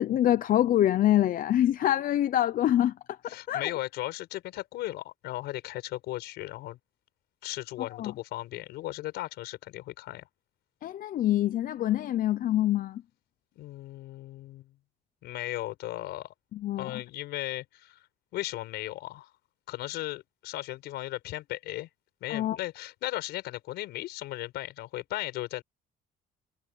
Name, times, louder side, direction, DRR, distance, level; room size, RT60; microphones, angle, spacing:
voice 1, 0.0-2.9 3.2-3.7 8.0-8.1 10.8-13.0 16.5-16.9 22.3-22.6, left 12 dB, 55° left, 0.7 m, -25 dB
voice 2, 3.3-6.8 7.4-10.2 13.5-14.8 15.2-16.3 16.8-18.0 18.3-19.3 19.7-21.9 22.2-25.6, left 16 dB, 80° left, 5.7 m, -36 dB
cardioid pair, 110°, 17 cm